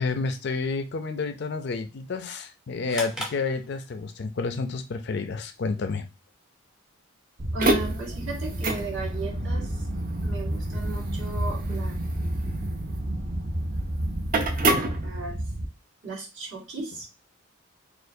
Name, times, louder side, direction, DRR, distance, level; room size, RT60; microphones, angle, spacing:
voice 1, 0.0-6.1, left 4 dB, 50° left, 9 dB, 0.4 m, -30 dB
sound 1, 2.9-4.3, equal, 5° right, 0.7 m, -37 dB
sound 2, 7.4-15.7, right 1 dB, 40° right, 0.5 m, -28 dB
voice 2, 7.5-9.9 10.2-11.9 15.0-15.4 16.0-17.1, right 3 dB, 60° right, -4 dB, 1.8 m, -35 dB
4.3 x 2.4 x 2.6 m, 0.28 s
head